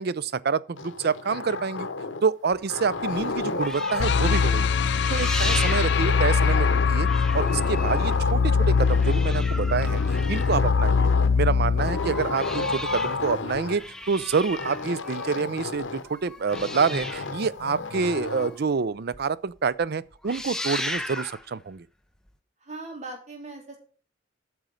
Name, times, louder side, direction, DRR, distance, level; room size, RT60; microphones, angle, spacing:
voice 1, 0.0-1.9 2.2-4.7 5.1-11.1 11.4-21.9, right 5 dB, 55° right, 0.5 m, -27 dB
sound 1, 0.8-2.3 2.7-4.8 5.4-7.0 7.3-9.3 9.8-11.4 11.8-13.8 14.6-16.1 16.5-18.6, left 3 dB, 85° left, 0.9 m, -32 dB
sound 2, 2.5-6.7 7.0-11.2 11.7-18.8 19.1-19.2 19.6-19.8 20.1-21.5 22.3-22.4, left 1 dB, 5° left, 0.7 m, -37 dB
sound 3, 4.0-13.1, left 5 dB, 65° left, 0.5 m, -23 dB
voice 2, 22.6-23.8, right 2 dB, 40° right, 3.5 m, -39 dB
9.0 x 6.3 x 5.2 m
head